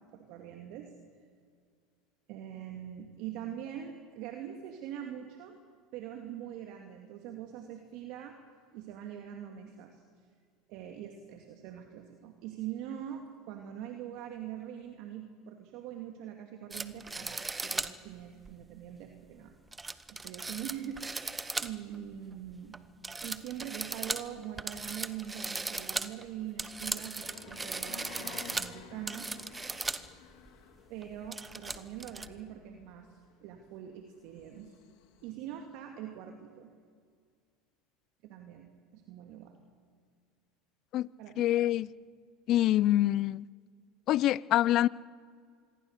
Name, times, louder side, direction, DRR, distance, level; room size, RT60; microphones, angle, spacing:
voice 1, 0.1-0.9 2.3-5.5 5.9-8.4 8.7-10.2 10.7-19.5 20.1-21.3 21.6-22.8 23.2-29.3 30.9-34.7 35.2-36.7 38.2-39.5 41.2-41.5, right 10 dB, 65° right, 2.4 m, -43 dB
sound 1, 16.7-18.0 18.4-18.5 19.7-22.0 22.3-22.8 23.0-30.1 30.5-30.6 31.0-32.3, right 3 dB, 15° right, 1.1 m, -37 dB
sound 2, 27.1-35.3, left 8 dB, 70° left, 3.2 m, -52 dB
voice 2, 41.4-41.9 42.5-43.4 44.1-44.9, left 13 dB, 50° left, 0.5 m, -25 dB
26.0 x 22.0 x 6.7 m
hypercardioid pair, 95°, 0 cm